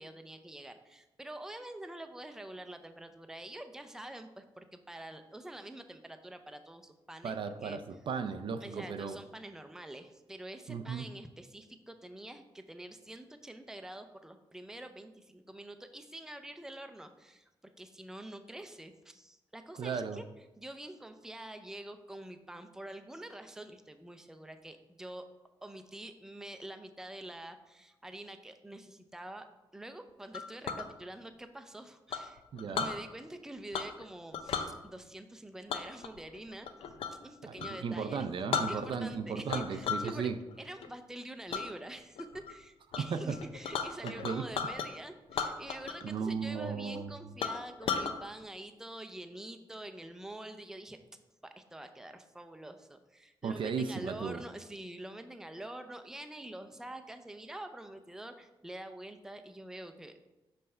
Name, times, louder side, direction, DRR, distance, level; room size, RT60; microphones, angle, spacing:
voice 1, 0.0-7.8 8.6-17.5 17.8-20.2 20.6-25.3 25.6-29.5 29.7-36.7 37.1-38.3 38.7-40.3 40.6-51.0 51.4-60.2, right 1 dB, 5° right, 7 dB, 0.5 m, -46 dB
voice 2, 7.2-9.2 10.7-11.1 19.8-20.2 32.5-32.9 37.5-40.4 42.9-43.4 44.0-44.5 46.0-47.3 53.4-54.4, right 5 dB, 60° right, 10 dB, 0.4 m, -36 dB
Chink clink, 30.3-30.9 32.1-33.0 33.7-34.0 34.3-34.7 35.7-37.2 37.6-37.8 38.2-38.3 38.5-39.1 39.5-40.1 40.5-40.9 41.5-41.7 42.2-42.5 42.9-43.0 43.3-44.9 45.3-46.1 46.4-46.5 46.9-47.0 47.4-48.1, left 6 dB, 90° left, 0.5 m, -35 dB
5.4 x 3.3 x 5.5 m, 1.0 s
cardioid pair, 95°, 9 cm